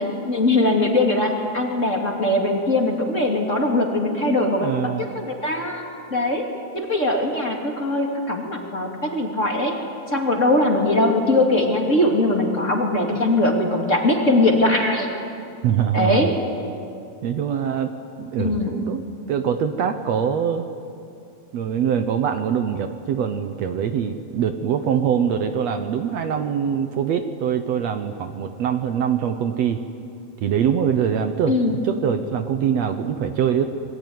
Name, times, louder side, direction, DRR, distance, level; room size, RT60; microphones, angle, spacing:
voice 1, 0.0-4.7 5.0-6.4 6.7-9.7 10.1-15.1 15.9-16.3 18.4-18.7 31.5-31.8, left 2 dB, 25° left, 1 dB, 2.7 m, -21 dB
voice 2, 4.3-5.1 15.6-16.3 17.2-19.0 19.3-20.7 21.5-29.8 30.4-31.6 31.8-33.7, right 8 dB, 65° right, 7 dB, 2.0 m, -23 dB
27.0 x 22.0 x 9.5 m, 2.5 s
omnidirectional pair, 3.5 m